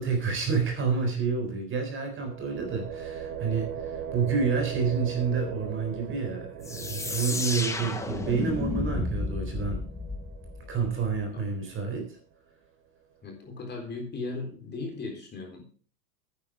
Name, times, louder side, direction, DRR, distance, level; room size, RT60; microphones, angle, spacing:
voice 1, 0.0-9.8 10.7-12.2, right 5 dB, 25° right, 4 dB, 3.9 m, -29 dB
sound 1, 2.2-12.0, right 8 dB, 65° right, 2.5 m, -40 dB
sound 2, 6.6-11.2, left 3 dB, 5° left, 1.2 m, -33 dB
voice 2, 13.2-15.8, left 3 dB, 20° left, 2 dB, 3.9 m, -37 dB
11.5 x 9.7 x 4.8 m, 0.41 s
supercardioid pair, 130°, 47 cm